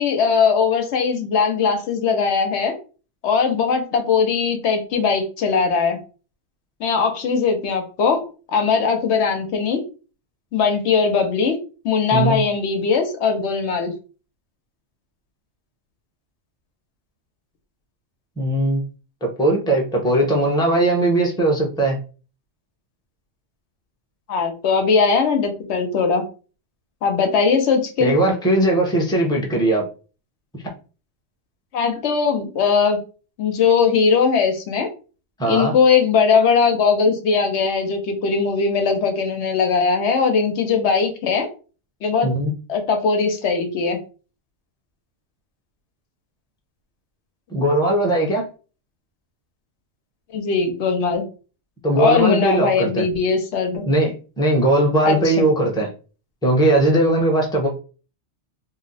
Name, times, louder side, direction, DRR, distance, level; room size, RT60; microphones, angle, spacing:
voice 1, 0.0-2.8 3.2-6.0 6.8-8.3 8.5-9.8 10.5-11.6 11.8-13.9 24.3-26.3 27.0-28.1 31.7-33.0 33.4-34.9 35.5-41.5 42.0-42.3 42.7-44.0 50.3-51.2 52.0-53.8 55.1-55.3, left 5 dB, 75° left, 0.9 m, -19 dB
voice 2, 18.4-18.8 19.2-22.0 28.0-29.9 35.4-35.7 42.2-42.5 47.5-48.5 51.8-53.1 53.9-55.9 56.4-57.7, right 1 dB, 5° left, 0.6 m, -19 dB
2.7 x 2.0 x 3.9 m
omnidirectional pair, 1.2 m